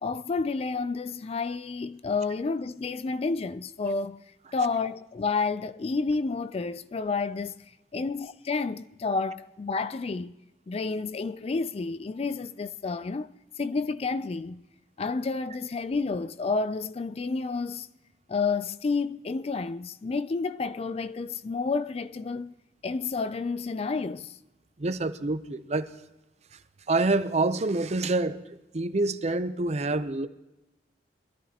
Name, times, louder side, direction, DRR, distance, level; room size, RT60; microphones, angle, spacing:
voice 1, 0.0-4.2 4.5-7.6 7.9-10.3 10.7-14.6 15.0-17.9 18.3-22.5 22.8-24.4, left 4 dB, 35° left, 0.3 m, -30 dB
voice 2, 24.8-25.9 26.9-30.3, right 2 dB, 40° right, 0.6 m, -27 dB
22.5 x 13.5 x 2.9 m
head